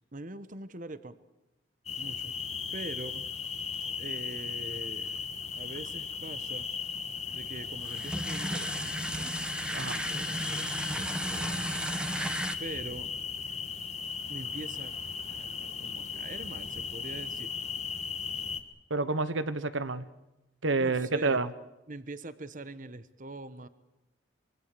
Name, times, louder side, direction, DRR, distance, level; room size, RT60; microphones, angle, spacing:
voice 1, 0.1-1.2 2.0-2.3 2.7-3.6 4.0-5.2 5.5-6.7 7.3-9.3 9.7-11.6 12.6-13.1 14.3-14.9 15.3-17.5 20.7-21.4 21.9-23.7, right 2 dB, 45° right, 13 dB, 1.1 m, -43 dB
sound 1, 1.9-18.6, left 6 dB, 35° left, 1.7 m, -37 dB
sound 2, 7.8-12.6, right 1 dB, 5° right, 1.4 m, -34 dB
voice 2, 18.9-20.1 20.6-21.5, right 3 dB, 80° right, 13 dB, 1.2 m, -29 dB
25.0 x 24.0 x 6.8 m, 0.95 s
head